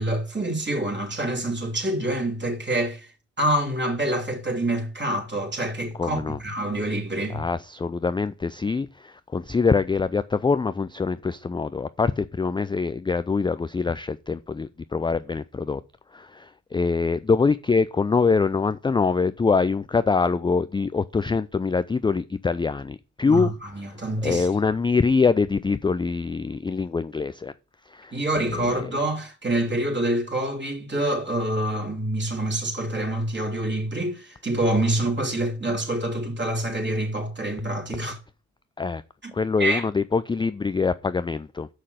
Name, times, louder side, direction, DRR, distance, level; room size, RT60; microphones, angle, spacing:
voice 1, 0.0-3.1 3.4-7.4 23.2-24.5 28.1-38.2 39.2-39.3 39.6-39.8, right 1 dB, 30° right, 3.4 m, -26 dB
voice 2, 6.0-6.4 7.3-15.8 16.1-23.5 24.2-27.5 27.9-28.9 38.8-39.0 39.3-41.7, left 4 dB, 15° left, 0.4 m, -24 dB
6.5 x 5.7 x 6.3 m
hypercardioid pair, 40°, 36 cm